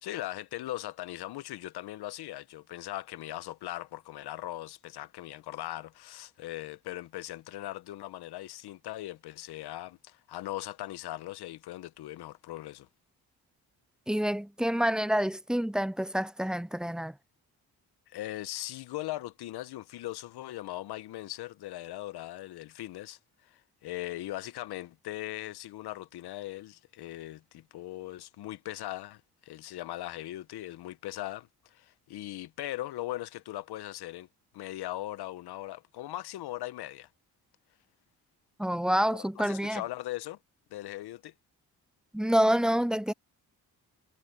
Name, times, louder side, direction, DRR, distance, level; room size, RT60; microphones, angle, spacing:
voice 1, 0.0-12.9 18.1-34.3 34.5-37.1 39.2-40.4 40.7-41.3, left 15 dB, 80° left, 0.8 m, -39 dB
voice 2, 14.1-17.1 38.6-39.8 42.1-43.1, equal, ahead, 0.3 m, -27 dB
cardioid pair, 65°, 38 cm